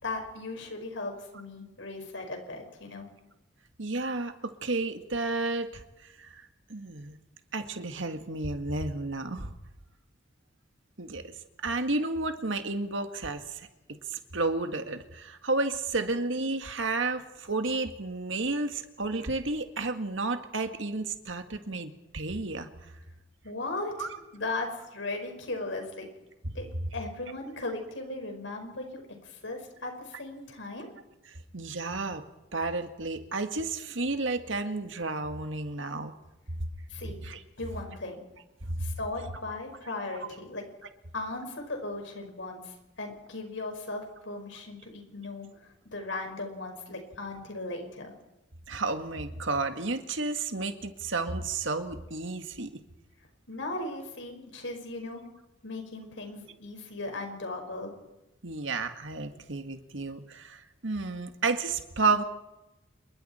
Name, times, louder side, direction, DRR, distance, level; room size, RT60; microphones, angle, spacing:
voice 1, 0.0-3.1 23.4-23.9 24.3-26.1 26.6-26.7 26.9-29.0 29.4-30.9 36.9-37.2 37.6-38.2 38.8-40.6 41.1-42.6 43.0-45.5 45.9-48.1 53.5-55.2 55.6-57.9, left 2 dB, 80° left, 4 dB, 5.3 m, -37 dB
voice 2, 3.8-5.8 6.2-7.2 7.5-9.5 11.0-11.3 11.6-13.7 14.1-22.7 24.0-24.1 26.4-26.5 31.5-32.2 32.5-36.1 37.2-37.4 38.7-38.8 48.7-52.7 58.4-62.2, right 3 dB, 80° right, 7 dB, 1.9 m, -31 dB
27.5 x 23.0 x 4.4 m, 0.99 s
head